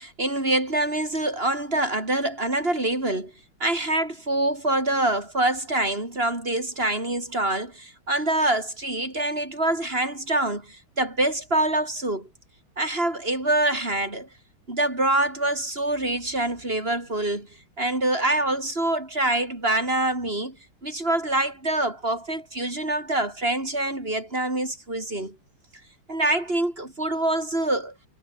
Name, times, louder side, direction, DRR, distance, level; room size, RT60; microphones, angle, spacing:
voice 1, 0.0-3.3 3.6-12.3 12.8-14.3 14.7-17.5 17.8-20.6 20.8-25.4 26.1-27.9, right 1 dB, 25° right, 5.6 m, -25 dB
omnidirectional pair, 2.4 m